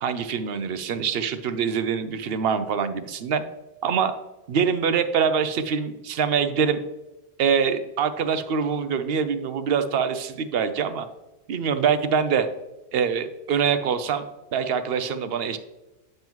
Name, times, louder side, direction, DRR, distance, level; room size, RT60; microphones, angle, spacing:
voice 1, 0.0-3.5 3.8-4.1 4.5-6.8 7.4-11.1 11.5-12.5 12.9-14.2 14.5-15.6, right 6 dB, 70° right, 10 dB, 0.8 m, -24 dB
8.8 x 5.4 x 3.0 m, 1.0 s
omnidirectional pair, 1.1 m